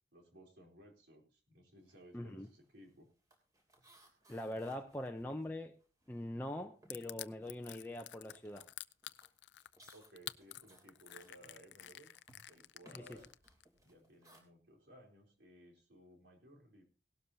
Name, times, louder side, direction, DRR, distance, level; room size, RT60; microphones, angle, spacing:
voice 1, 0.1-3.1 9.9-12.1 12.5-13.3 13.8-16.8, right 1 dB, 85° right, 4.1 m, -60 dB
sound 1, 1.8-2.1 2.3-6.4 6.7-14.4, right 1 dB, 20° right, 3.0 m, -66 dB
voice 2, 2.1-2.5 4.3-5.8 6.1-8.7 12.9-13.2, left 1 dB, 10° left, 0.6 m, -43 dB
Crushing, 6.9-13.6, left 14 dB, 85° left, 0.5 m, -49 dB
17.5 x 12.0 x 2.8 m
head